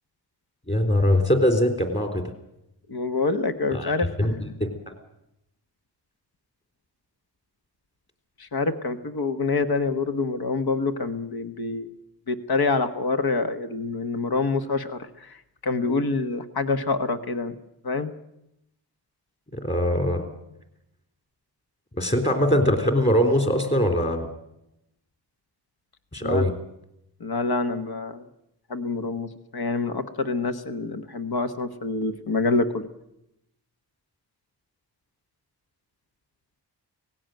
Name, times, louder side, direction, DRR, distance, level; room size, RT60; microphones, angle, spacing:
voice 1, 0.7-2.2 3.7-3.9 4.2-4.9 19.5-20.3 22.0-24.3 26.1-26.5, equal, 25° left, 5 dB, 3.7 m, -22 dB
voice 2, 2.9-4.6 8.4-11.9 12.3-15.4 15.6-17.5 17.8-18.1 26.2-26.5 27.2-28.2 28.7-32.9, left 3 dB, 60° left, 9 dB, 1.4 m, -26 dB
18.5 x 16.0 x 9.2 m, 0.84 s
wide cardioid pair, 75°, 42 cm